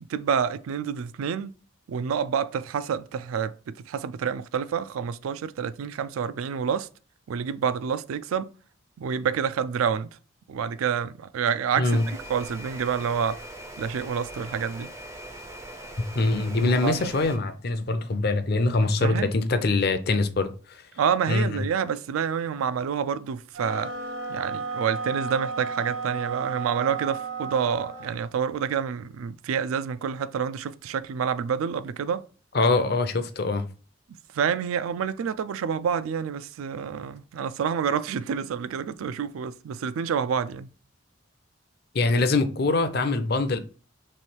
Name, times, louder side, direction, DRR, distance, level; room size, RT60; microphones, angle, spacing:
voice 1, 0.1-1.5 1.9-6.9 7.3-8.5 9.0-10.1 10.5-13.4 13.8-14.9 16.6-17.0 19.0-19.3 21.0-23.9 24.3-32.2 34.3-40.7, right 7 dB, 85° right, 0.3 m, -28 dB
sound 1, 11.9-17.4, right 1 dB, 15° right, 0.4 m, -41 dB
voice 2, 16.1-20.8 21.3-21.6 32.5-33.7 41.9-43.6, left 3 dB, 50° left, 0.5 m, -24 dB
sound 2, 23.5-28.2, right 4 dB, 70° right, 1.2 m, -33 dB
3.2 x 3.1 x 4.4 m
head